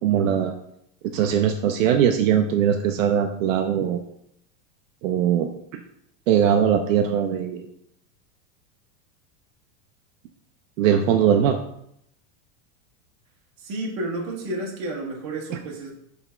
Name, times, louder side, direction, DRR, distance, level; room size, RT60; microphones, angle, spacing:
voice 1, 0.0-0.5 1.0-4.0 5.0-5.8 6.3-7.6 10.8-11.6, right 9 dB, 70° right, 5 dB, 0.6 m, -21 dB
voice 2, 13.6-15.9, right 2 dB, 30° right, -1 dB, 1.2 m, -31 dB
6.0 x 3.5 x 4.4 m, 0.74 s
supercardioid pair, 175°, 41 cm